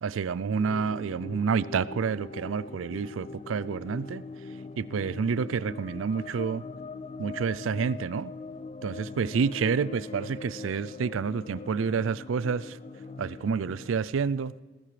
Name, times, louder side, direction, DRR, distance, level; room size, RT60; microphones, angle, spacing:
voice 1, 0.0-4.2 4.8-6.6 7.2-8.3 8.8-12.8 13.2-14.5, right 6 dB, 80° right, 0.4 m, -29 dB
sound 1, 0.5-14.0, left 3 dB, 30° left, 0.3 m, -42 dB
19.5 x 13.5 x 3.3 m
head